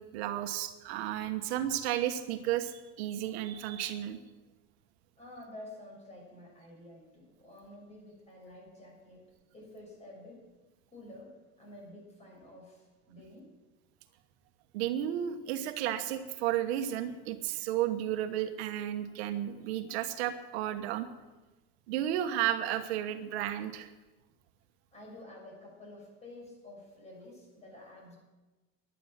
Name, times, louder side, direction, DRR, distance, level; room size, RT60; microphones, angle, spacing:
voice 1, 0.0-4.2 14.7-21.1 21.9-23.9, right 11 dB, 85° right, 8 dB, 1.4 m, -33 dB
voice 2, 5.2-9.2 9.5-10.5 10.9-13.5 24.9-28.2, left 1 dB, 20° left, -1 dB, 6.6 m, -50 dB
16.0 x 11.0 x 7.5 m, 1.2 s
cardioid pair, 160°, 32 cm